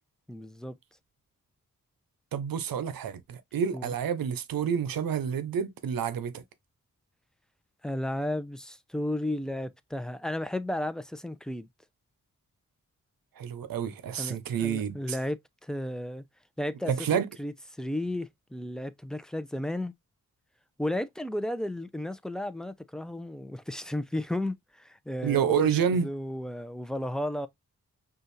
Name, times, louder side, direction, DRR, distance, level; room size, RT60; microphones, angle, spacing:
voice 1, 0.3-0.8 3.7-4.0 7.8-11.7 14.2-16.2 16.6-19.9 20.8-27.5, left 1 dB, ahead, 0.6 m, -34 dB
voice 2, 2.3-6.4 13.4-15.0 16.9-17.3 25.2-26.1, right 8 dB, 85° right, 0.6 m, -28 dB
5.4 x 2.5 x 3.1 m
cardioid pair, 45°, 33 cm